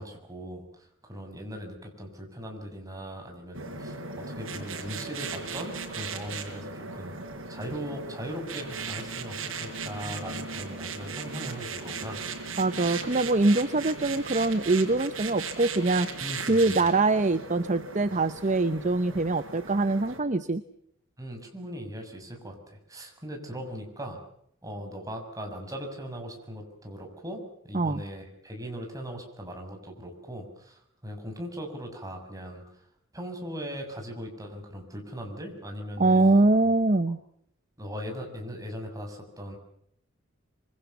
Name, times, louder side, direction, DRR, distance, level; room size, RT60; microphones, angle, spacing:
voice 1, 0.0-7.1 7.5-12.2 16.2-16.8 21.2-24.2 24.6-32.6 33.1-36.3 37.8-39.6, equal, 15° right, 3 dB, 6.7 m, -39 dB
sound 1, 3.5-20.2, right 5 dB, 85° right, 5.5 m, -37 dB
voice 2, 12.6-16.1 16.5-20.6 27.7-28.0 36.0-37.2, right 2 dB, 35° right, 12 dB, 0.9 m, -23 dB
26.5 x 24.0 x 7.2 m, 0.70 s
head